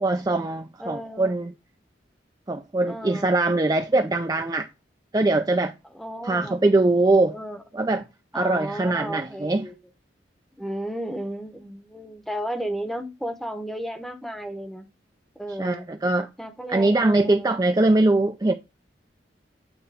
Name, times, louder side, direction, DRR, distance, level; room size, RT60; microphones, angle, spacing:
voice 1, 0.0-1.5 2.5-4.7 5.1-5.7 6.2-7.3 7.7-8.0 8.3-9.6 15.6-16.3 16.7-18.5, right 2 dB, 20° right, 0.4 m, -22 dB
voice 2, 0.8-1.3 2.8-3.3 5.9-6.6 7.3-7.6 8.3-9.8 10.6-14.9 15.4-15.9 16.4-17.7, equal, ahead, 0.9 m, -34 dB
8.9 x 3.0 x 4.9 m
head